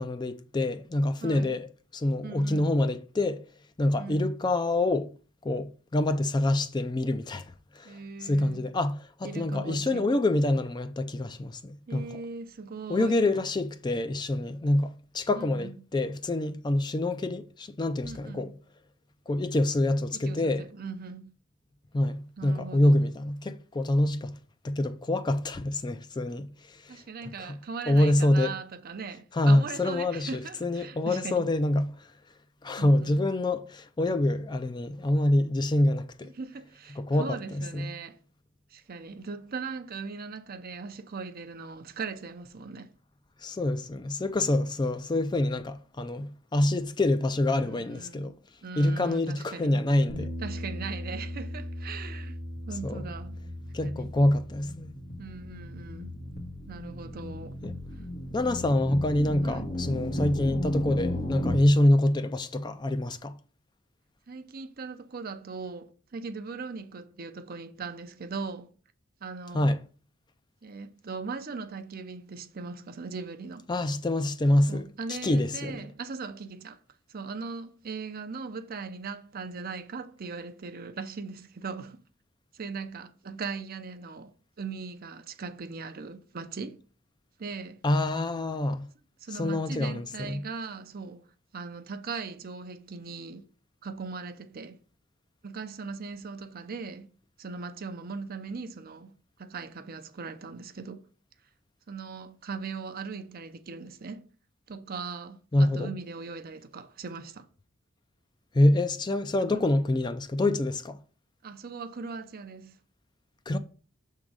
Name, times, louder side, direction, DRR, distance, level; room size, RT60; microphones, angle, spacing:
voice 1, 0.0-1.7 1.9-3.4 3.8-5.1 5.4-12.1 12.9-18.5 19.3-20.6 21.9-24.4 24.6-27.0 27.4-27.6 27.9-28.5 29.3-32.0 32.6-36.3 37.0-37.9 43.4-48.3 48.8-50.3 52.8-53.0 53.7-54.9 57.6-57.7 58.3-63.3 69.5-69.8 73.7-75.8 87.8-88.9 89.4-90.4 105.5-105.9 108.5-111.0 113.5-113.6, left 1 dB, 20° left, 0.4 m, -26 dB
voice 2, 1.2-1.6 2.2-2.8 4.0-4.3 7.8-8.7 9.2-10.2 11.9-13.2 15.3-15.7 18.0-18.5 20.1-21.3 22.4-23.1 26.9-31.5 32.8-33.3 36.2-38.2 38.7-42.9 47.6-48.3 48.6-49.8 50.4-52.4 52.7-53.4 53.8-54.1 55.2-56.1 56.7-57.6 59.4-59.8 64.3-68.7 69.2-69.7 70.6-73.7 74.7-76.8 77.1-82.0 82.5-84.3 84.6-86.8 87.4-87.8 89.2-91.3 91.5-93.4 93.8-94.8 95.4-97.1 97.4-101.0 101.9-104.2 104.7-107.5 109.4-109.6 111.4-112.8, right 4 dB, 45° right, 0.6 m, -39 dB
Bass guitar, 50.1-56.3, left 1 dB, 75° left, 1.3 m, -39 dB
sound 1, 52.5-61.6, left 1 dB, 45° left, 1.4 m, -35 dB
6.2 x 3.7 x 6.1 m
head